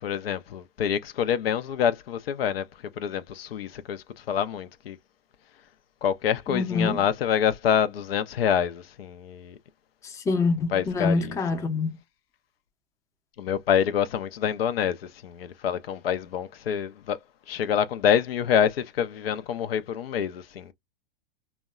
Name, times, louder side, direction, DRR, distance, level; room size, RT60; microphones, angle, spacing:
voice 1, 0.0-2.7 3.0-5.0 6.0-9.6 10.7-11.4 13.4-17.2 17.5-20.7, left 8 dB, 85° left, 0.5 m, -26 dB
voice 2, 6.5-7.0 10.0-12.0, left 3 dB, 10° left, 0.4 m, -26 dB
2.7 x 2.1 x 2.2 m
hypercardioid pair, 115°, 29 cm